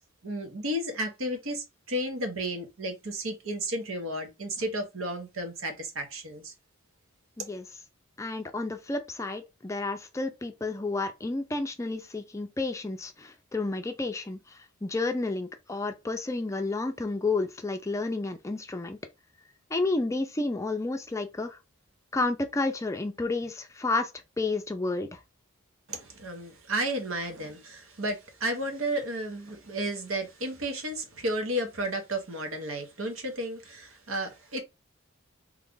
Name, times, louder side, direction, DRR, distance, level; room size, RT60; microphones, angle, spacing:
voice 1, 0.2-6.5 25.9-34.6, right 1 dB, 70° right, 1.0 m, -33 dB
voice 2, 8.2-19.0 19.7-21.6 22.1-24.1 24.4-25.2, left 3 dB, 15° left, 0.4 m, -31 dB
3.1 x 2.4 x 3.7 m
head